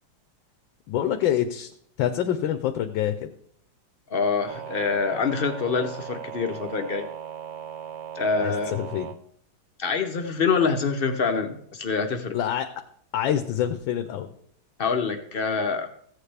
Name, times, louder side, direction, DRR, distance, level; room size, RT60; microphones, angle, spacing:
voice 1, 0.9-1.7 2.0-3.3 8.4-9.1 12.3-12.7 13.1-14.3, left 10 dB, 85° left, 7 dB, 1.4 m, -26 dB
voice 2, 4.1-7.1 8.1-8.8 9.8-12.3 14.8-15.9, left 5 dB, 70° left, 5 dB, 0.5 m, -25 dB
sound 1, 4.5-9.2, right 9 dB, 70° right, 1.3 m, -38 dB
15.0 x 8.2 x 3.3 m, 0.66 s
omnidirectional pair, 2.0 m